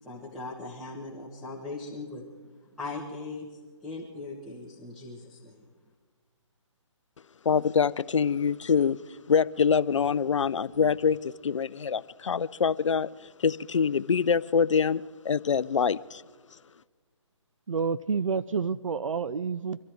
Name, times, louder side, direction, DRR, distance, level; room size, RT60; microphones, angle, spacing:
voice 1, 0.0-2.3 2.8-5.6, left 3 dB, ahead, 1.5 m, -39 dB
voice 2, 7.5-9.0 9.3-13.1 13.4-16.2, left 6 dB, 70° left, 0.5 m, -25 dB
voice 3, 17.7-19.8, right 5 dB, 80° right, 0.5 m, -29 dB
24.5 x 13.0 x 4.6 m
hypercardioid pair, 155°, 17 cm